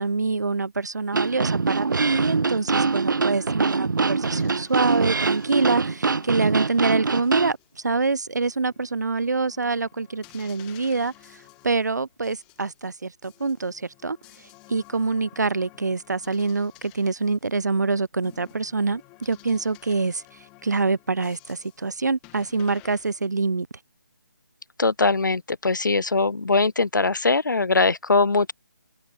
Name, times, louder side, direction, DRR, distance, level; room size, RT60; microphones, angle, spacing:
voice 1, 0.0-14.2 14.7-20.2 20.6-23.7, right 4 dB, 65° right, 1.9 m, -25 dB
sound 1, 1.1-7.5, right 4 dB, 80° right, 0.7 m, -24 dB
sound 2, 4.2-7.9 8.2-12.9 13.2-17.8 18.2-23.2, left 25 dB, 10° left, 4.9 m, -53 dB
voice 2, 24.8-28.5, left 3 dB, 75° left, 2.5 m, -21 dB
hypercardioid pair, 180°, 10 cm